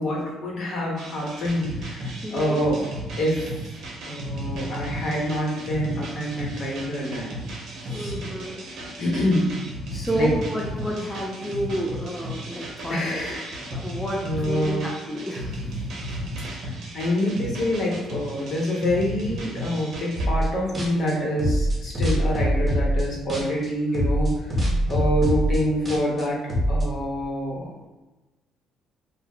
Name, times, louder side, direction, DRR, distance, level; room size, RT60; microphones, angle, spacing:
voice 1, 0.0-2.9 3.2-3.6 4.1-7.3 7.9-8.1 9.0-9.5 10.1-10.3 12.9-13.6 14.2-14.8 16.6-24.5 24.9-26.4 26.7-27.7, equal, 60° left, -3 dB, 1.0 m, -26 dB
sound 1, 1.0-20.3, equal, 70° right, 0.6 m, -35 dB
voice 2, 2.2-2.6 7.9-8.6 9.9-13.2 13.7-15.6, right 1 dB, 10° left, -2 dB, 0.4 m, -30 dB
sound 2, 20.2-20.5 20.7-23.7 23.9-26.8, equal, 30° right, 0.8 m, -23 dB
2.2 x 2.1 x 3.6 m, 1.1 s
cardioid pair, 85°, 0 cm